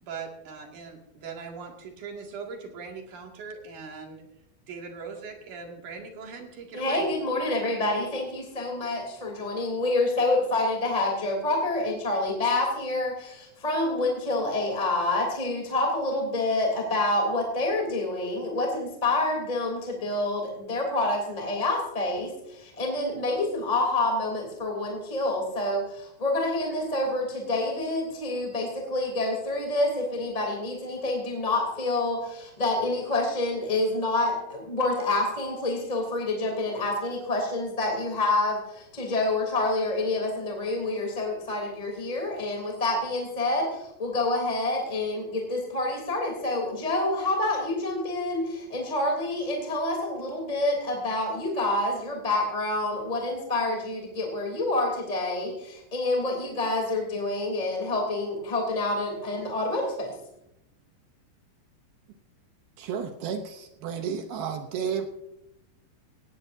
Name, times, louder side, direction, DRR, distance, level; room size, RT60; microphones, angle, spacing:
voice 1, 0.0-4.2 4.7-7.1, right 5 dB, 50° right, 1 dB, 3.2 m, -40 dB
voice 2, 6.7-60.1, left 2 dB, 10° left, 1 dB, 2.3 m, -27 dB
voice 3, 62.8-65.1, right 7 dB, 75° right, 6 dB, 2.3 m, -32 dB
18.0 x 17.0 x 2.7 m, 0.84 s
omnidirectional pair, 5.2 m